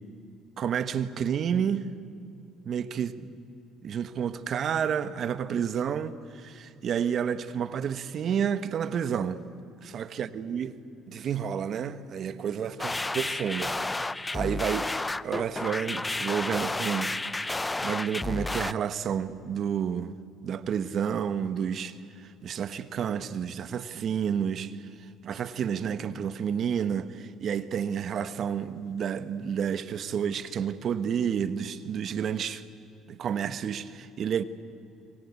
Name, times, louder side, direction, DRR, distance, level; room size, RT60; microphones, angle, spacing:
voice 1, 0.6-1.9 2.6-3.3 3.8-9.4 9.8-10.7 11.1-14.9 15.2-17.4 17.8-20.2 20.4-24.9 25.2-32.6 33.1-34.4, right 8 dB, 55° right, 1.3 m, -30 dB
sound 1, 12.8-18.7, left 2 dB, 15° left, 0.6 m, -31 dB
27.0 x 24.0 x 8.4 m
supercardioid pair, 90°, 0 cm